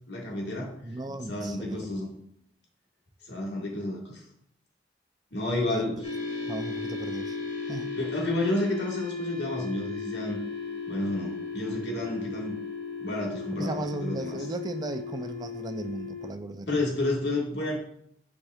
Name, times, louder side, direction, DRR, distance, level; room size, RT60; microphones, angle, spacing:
voice 1, 0.1-0.7 1.1-2.1 3.3-4.2 5.3-6.0 8.0-10.4 10.9-12.5 13.0-14.4 16.7-17.8, left 1 dB, 80° left, -1 dB, 1.7 m, -30 dB
voice 2, 0.8-1.9 5.7-5.9 6.5-7.4 7.7-7.9 13.5-16.8, right 2 dB, 20° right, 8 dB, 0.4 m, -36 dB
sound 1, 6.0-16.3, left 5 dB, 35° left, 1.6 m, -36 dB
8.8 x 4.8 x 2.4 m, 0.68 s
head